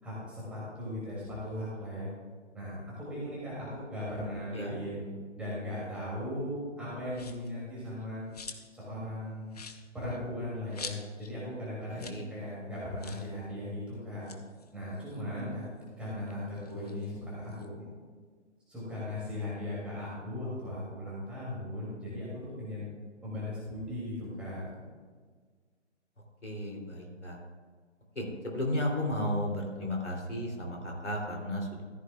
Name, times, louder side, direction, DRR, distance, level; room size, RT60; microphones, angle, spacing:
voice 1, 0.0-2.1 2.5-8.2 8.7-9.6 9.9-14.3 14.7-15.6 16.0-17.9 18.7-22.8 23.2-24.6, left 1 dB, 5° right, -9 dB, 2.8 m, -38 dB
sound 1, 7.1-7.5 8.0-8.8 9.1-9.2 9.5-11.4 11.6-11.7 11.9-12.3 12.5-12.6 13.0-13.3 14.1-15.8 16.2-17.7, left 5 dB, 35° left, 0.7 m, -46 dB
voice 2, 11.9-12.2 26.4-27.4 28.1-31.8, left 1 dB, 70° left, 0 dB, 3.3 m, -34 dB
14.0 x 12.5 x 2.4 m, 1.5 s
figure-of-eight pair, 145°, 36 cm